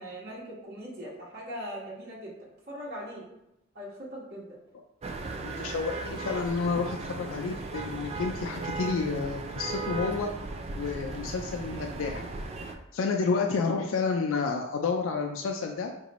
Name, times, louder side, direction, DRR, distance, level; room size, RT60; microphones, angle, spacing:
voice 1, 0.0-2.3 2.7-3.2 3.7-4.5, equal, 55° right, -7 dB, 1.3 m, -40 dB
sound 1, 5.0-12.8, right 3 dB, 30° right, 0.4 m, -36 dB
voice 2, 5.4-10.3 10.8-12.2 12.9-15.9, left 4 dB, 80° left, 3 dB, 0.4 m, -30 dB
4.8 x 2.6 x 3.0 m, 0.89 s
head